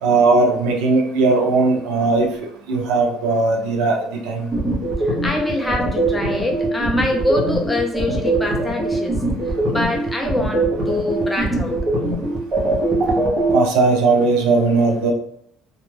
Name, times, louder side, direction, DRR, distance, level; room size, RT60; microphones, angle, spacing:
voice 1, 0.0-2.3 2.7-4.5 13.5-15.1, right 3 dB, 85° right, 1 dB, 0.6 m, -18 dB
sound 1, 4.5-13.5, right 2 dB, 30° right, 0.8 m, -21 dB
voice 2, 5.0-11.8, left 1 dB, 10° left, 1 dB, 0.4 m, -24 dB
2.5 x 2.2 x 3.1 m, 0.69 s
cardioid pair, 145°, 0 cm